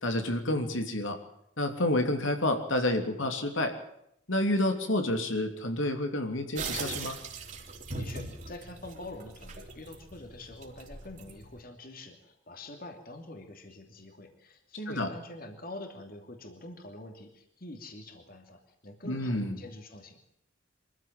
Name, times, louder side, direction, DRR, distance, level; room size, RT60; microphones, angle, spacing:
voice 1, 0.0-1.2 1.6-3.7 4.3-7.2 14.9-15.1 19.0-19.6, left 1 dB, 80° left, 5 dB, 3.1 m, -29 dB
sound 1, 6.6-11.6, right 4 dB, 40° right, 3.4 m, -40 dB
voice 2, 7.9-20.2, left 1 dB, 45° left, 5 dB, 2.7 m, -45 dB
24.5 x 15.0 x 7.5 m, 0.78 s
head